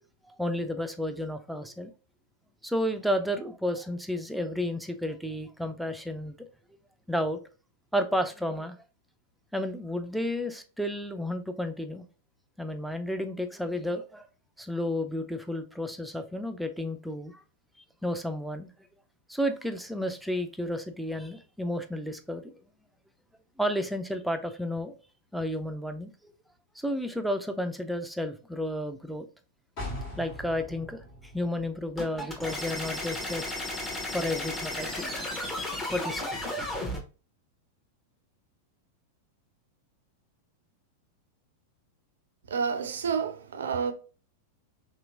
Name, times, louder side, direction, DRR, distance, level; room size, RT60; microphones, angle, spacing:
voice 1, 0.4-1.9 2.6-6.4 7.1-7.4 7.9-8.8 9.5-12.1 12.6-14.3 14.6-17.4 18.0-18.7 19.3-22.4 23.6-24.9 25.3-26.3 26.8-29.3 30.2-31.0 31.3-33.5 34.1-35.3 35.9-36.2, left 1 dB, ahead, 0.4 m, -32 dB
sound 1, 29.8-33.5 33.9-34.0, left 1 dB, 50° left, 1.4 m, -42 dB
sound 2, 32.0-37.0, left 1 dB, 15° left, 0.8 m, -34 dB
voice 2, 42.5-43.9, right 6 dB, 65° right, 0.4 m, -29 dB
2.9 x 2.9 x 2.5 m
figure-of-eight pair, 95°, 0 cm